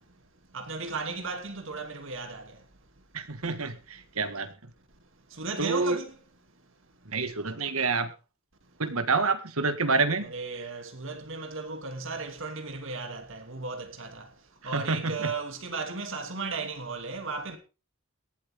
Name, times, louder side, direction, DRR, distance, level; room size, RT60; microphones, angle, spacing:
voice 1, 0.0-3.0 3.9-4.0 5.0-6.8 7.1-7.2 8.6-8.8 10.2-17.6, right 3 dB, 65° right, 2.9 m, -36 dB
voice 2, 3.1-4.5 5.6-6.0 7.1-8.1 8.8-10.3 14.7-15.3, right 4 dB, 85° right, 2.0 m, -28 dB
18.0 x 12.0 x 3.7 m
head